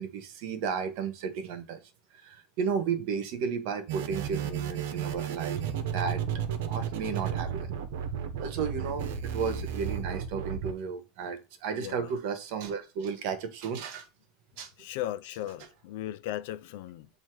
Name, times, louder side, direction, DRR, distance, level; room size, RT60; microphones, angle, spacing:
voice 1, 0.0-1.8 2.1-5.6 5.9-6.2 6.7-7.8 8.4-14.1 14.6-14.7, right 6 dB, 60° right, 1.3 m, -33 dB
sound 1, 3.9-10.7, right 8 dB, 75° right, 1.0 m, -33 dB
voice 2, 11.7-12.1 14.8-17.1, left 13 dB, 70° left, 0.5 m, -37 dB
7.4 x 2.9 x 4.7 m
supercardioid pair, 150°, 0 cm